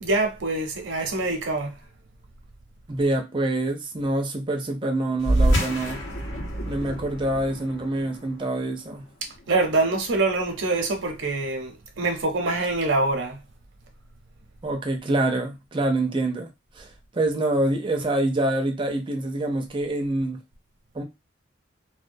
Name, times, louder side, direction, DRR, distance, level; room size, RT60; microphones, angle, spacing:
voice 1, 0.0-1.7 9.5-13.4, right 2 dB, 75° right, 0.6 m, -25 dB
voice 2, 2.9-6.0 6.7-9.0 14.6-16.5 16.8-16.9 17.1-20.4 20.9-21.0, right 2 dB, 25° right, 0.4 m, -26 dB
sound 1, 5.2-10.1, right 1 dB, 70° left, 0.7 m, -27 dB
2.2 x 2.2 x 2.6 m
head